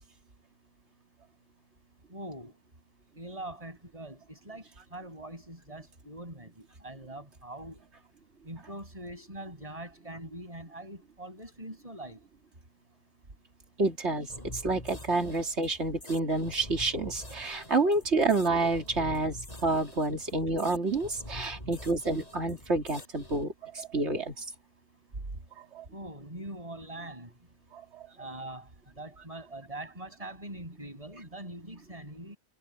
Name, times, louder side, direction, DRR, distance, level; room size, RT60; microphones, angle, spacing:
voice 1, 2.1-2.6 3.1-7.8 8.4-12.2 25.9-27.3 28.2-28.7 29.0-32.4, right 1 dB, 25° right, 6.7 m, -43 dB
voice 2, 13.8-19.4 19.6-24.4 25.6-25.8 27.7-28.0, right 3 dB, 55° right, 3.1 m, -29 dB
sound 1, 14.3-23.4, left 1 dB, 30° left, 7.7 m, -46 dB
omnidirectional pair, 1.4 m